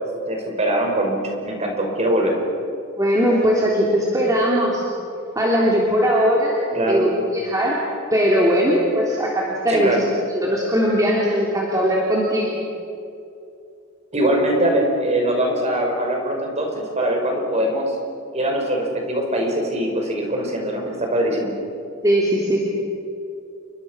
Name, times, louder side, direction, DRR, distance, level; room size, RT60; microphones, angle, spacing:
voice 1, 0.3-2.3 6.7-7.0 9.7-10.0 14.1-18.0 18.3-21.5, right 1 dB, 30° right, 1 dB, 5.4 m, -22 dB
voice 2, 3.0-4.8 5.3-6.5 6.9-7.8 8.1-10.0 10.3-12.5 22.0-22.6, equal, 15° right, -4 dB, 3.5 m, -19 dB
29.5 x 23.5 x 6.4 m, 2.5 s
head